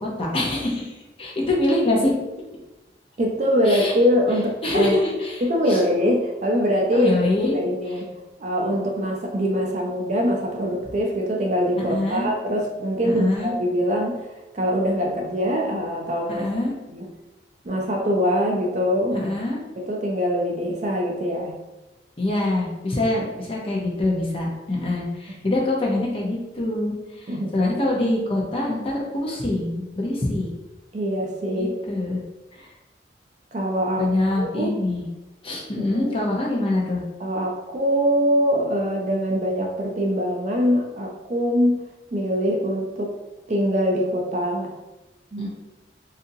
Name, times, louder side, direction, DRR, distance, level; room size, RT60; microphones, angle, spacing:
voice 1, 0.0-2.1 3.7-3.9 4.6-5.8 6.9-7.6 11.8-12.3 13.0-13.5 16.3-16.7 19.1-19.6 22.2-30.5 31.5-32.2 32.5-32.7 34.0-35.0 35.4-37.0 45.4-45.5, left 2 dB, 30° left, -3 dB, 0.7 m, -24 dB
voice 2, 3.2-5.0 5.4-7.1 7.5-8.1 8.4-14.2 14.5-16.5 16.9-17.1 17.6-19.2 19.8-21.5 25.3-25.4 27.3-27.5 30.9-31.7 33.5-34.1 34.4-34.7 35.7-36.1 37.2-41.8 42.1-43.1 43.5-44.7 45.3-45.5, equal, 40° right, 0 dB, 0.4 m, -23 dB
3.9 x 2.6 x 2.6 m, 1.0 s
head